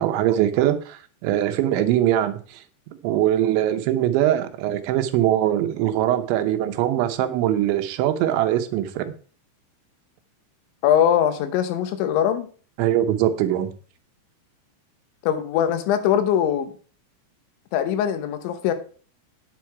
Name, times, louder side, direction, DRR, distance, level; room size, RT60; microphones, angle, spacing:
voice 1, 0.0-2.6 3.0-9.1 12.8-13.7, right 12 dB, 85° right, 9 dB, 3.3 m, -22 dB
voice 2, 10.8-12.5 15.2-16.7 17.7-18.7, left 9 dB, 85° left, 10 dB, 3.4 m, -21 dB
9.6 x 7.6 x 4.7 m, 0.41 s
omnidirectional pair, 5.2 m